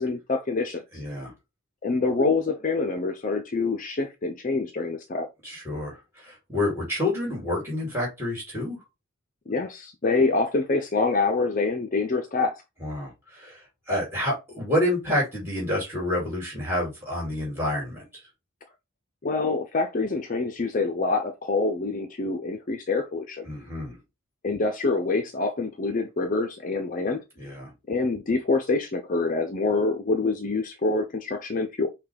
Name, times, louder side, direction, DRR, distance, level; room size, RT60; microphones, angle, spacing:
voice 1, 0.0-0.8 1.8-5.3 9.5-12.6 19.2-23.5 24.4-27.2 27.9-31.9, left 3 dB, 35° left, 0.5 m, -26 dB
voice 2, 0.9-1.3 5.4-8.8 12.8-18.0 23.4-24.0 27.4-27.7, left 1 dB, 10° right, 2.4 m, -28 dB
5.8 x 2.3 x 3.4 m
head